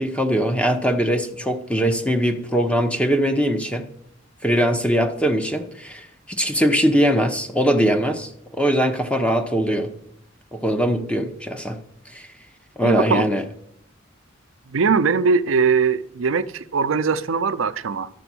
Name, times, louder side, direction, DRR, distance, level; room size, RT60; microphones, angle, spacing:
voice 1, 0.0-3.8 4.4-9.9 10.5-11.7 12.1-12.3 12.8-13.4, equal, 5° left, 0.9 m, -21 dB
voice 2, 12.8-13.2 14.7-18.1, right 5 dB, 80° right, 0.6 m, -21 dB
12.5 x 6.9 x 6.1 m
head